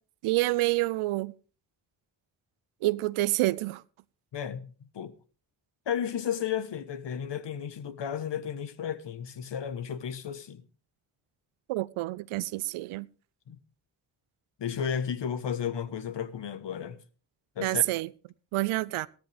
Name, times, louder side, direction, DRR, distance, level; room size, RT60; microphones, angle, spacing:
voice 1, 0.2-1.3 2.8-3.8 11.7-13.1 17.6-18.1 18.5-19.1, right 18 dB, 80° right, 0.6 m, -28 dB
voice 2, 4.3-5.1 5.9-10.6 13.5-13.6 14.6-17.0 17.6-17.8, left 8 dB, 60° left, 1.3 m, -33 dB
15.0 x 13.0 x 3.4 m
supercardioid pair, 45°, 49 cm